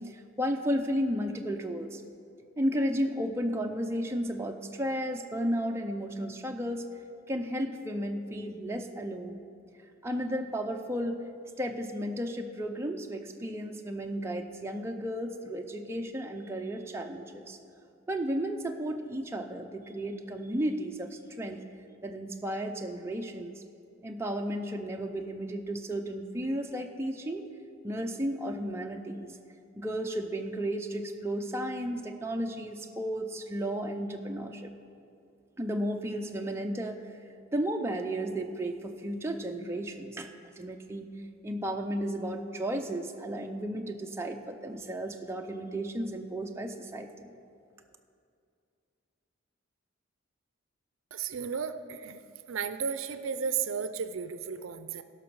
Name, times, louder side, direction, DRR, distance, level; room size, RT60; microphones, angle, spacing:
voice 1, 0.0-2.0 2.6-6.8 7.3-9.4 10.0-11.2 11.6-17.6 18.1-21.6 22.0-23.6 24.0-27.5 27.8-29.3 29.8-34.7 35.6-37.0 37.5-41.1 41.4-47.3, equal, 10° right, 3 dB, 0.5 m, -33 dB
voice 2, 51.1-52.2 52.5-55.0, right 6 dB, 70° right, 11 dB, 0.5 m, -34 dB
17.0 x 6.0 x 4.7 m, 2.4 s
head